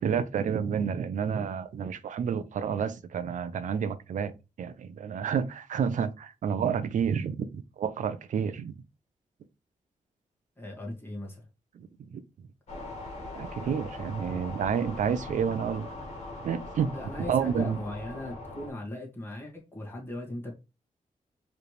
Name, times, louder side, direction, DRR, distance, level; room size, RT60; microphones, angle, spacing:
voice 1, 0.0-4.3 4.6-7.5 7.8-8.8 12.1-12.2 13.3-15.9 16.4-16.9 17.3-17.8, right 7 dB, 75° right, 0.6 m, -29 dB
voice 2, 10.6-11.5 16.9-20.5, left 1 dB, 15° left, 1.8 m, -38 dB
sound 1, 12.7-18.7, left 2 dB, 55° left, 1.7 m, -41 dB
4.9 x 3.3 x 3.2 m
wide cardioid pair, 125°, 13 cm